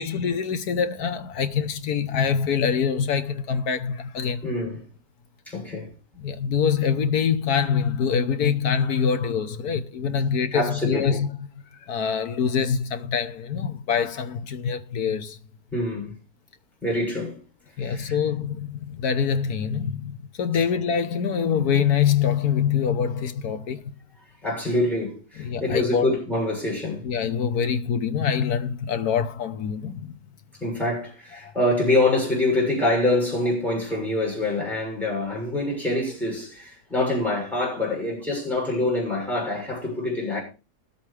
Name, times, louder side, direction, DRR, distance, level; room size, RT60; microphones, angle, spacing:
voice 1, 0.0-4.4 6.2-11.3 11.8-15.4 17.8-23.9 25.4-26.1 27.0-30.2 31.4-31.5, left 7 dB, 65° left, 1.4 m, -25 dB
voice 2, 4.4-4.9 5.5-5.9 10.5-11.2 15.7-16.1 16.8-17.4 17.8-18.2 24.4-27.1 30.6-40.4, left 2 dB, ahead, 7.0 m, -25 dB
20.5 x 8.5 x 3.3 m
omnidirectional pair, 1.8 m